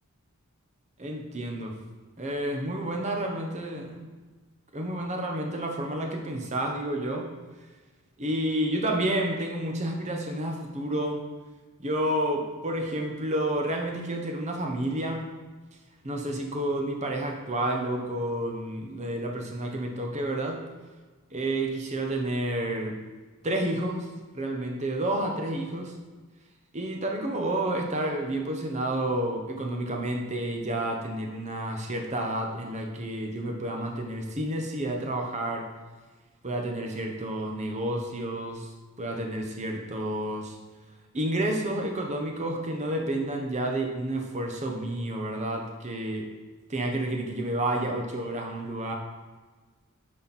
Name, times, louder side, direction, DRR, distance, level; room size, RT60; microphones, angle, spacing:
voice 1, 1.0-1.7 2.2-4.1 4.7-7.3 8.2-11.3 11.8-15.2 16.0-20.6 21.3-23.0 23.4-24.1 24.3-25.9 26.7-35.7 36.4-38.7 39.0-40.6 41.1-46.3 46.7-48.9, right 1 dB, 30° right, 2 dB, 1.0 m, -30 dB
9.3 x 4.4 x 4.2 m, 1.3 s
head